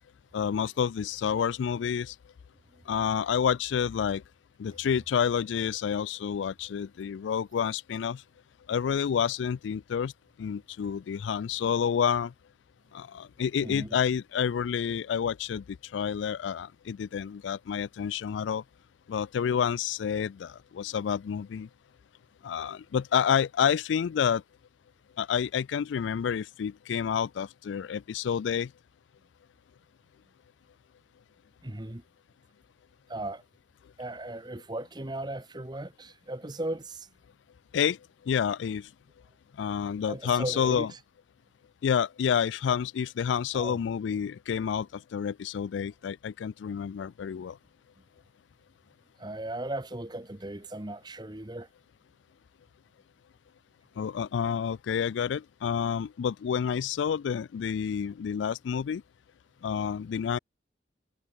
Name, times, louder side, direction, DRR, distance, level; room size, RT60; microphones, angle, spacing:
voice 1, 0.3-2.2 2.9-4.2 4.6-8.2 8.7-10.1 10.4-12.3 12.9-18.6 19.1-21.7 22.4-24.4 25.2-28.7 37.7-38.0 38.2-38.9 39.6-40.9 41.8-47.6 54.0-59.0 59.6-60.4, left 7 dB, 85° left, 0.3 m, -29 dB
voice 2, 13.6-14.0 20.8-20.9 31.6-32.0 33.1-33.4 34.0-37.1 40.1-41.0 43.5-43.8 49.2-51.7 59.9-60.0, right 1 dB, 25° right, 1.3 m, -37 dB
head